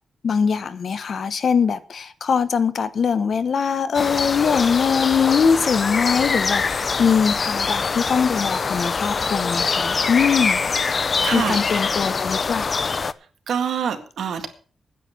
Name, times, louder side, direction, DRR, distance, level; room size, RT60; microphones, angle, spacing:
voice 1, 0.2-10.6 11.3-12.7, left 6 dB, 55° left, 1.1 m, -22 dB
sound 1, 3.9-13.1, left 4 dB, 40° left, 0.5 m, -24 dB
voice 2, 11.2-11.6 13.5-14.5, right 7 dB, 85° right, 1.9 m, -25 dB
9.9 x 8.3 x 7.9 m
wide cardioid pair, 150°, 0 cm